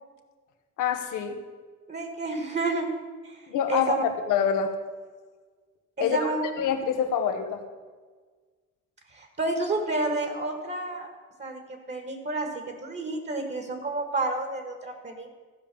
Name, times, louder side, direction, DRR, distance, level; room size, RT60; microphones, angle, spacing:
voice 1, 0.8-1.4 3.5-4.7 6.0-6.3 6.6-7.6, left 7 dB, 90° left, 6 dB, 1.2 m, -26 dB
voice 2, 1.9-2.9 3.2-3.4 3.7-4.0 6.0-6.4 9.1-11.1 11.4-15.3, right 2 dB, 35° right, 5 dB, 1.8 m, -30 dB
15.0 x 5.2 x 7.0 m, 1.5 s
cardioid pair, 90°, 30 cm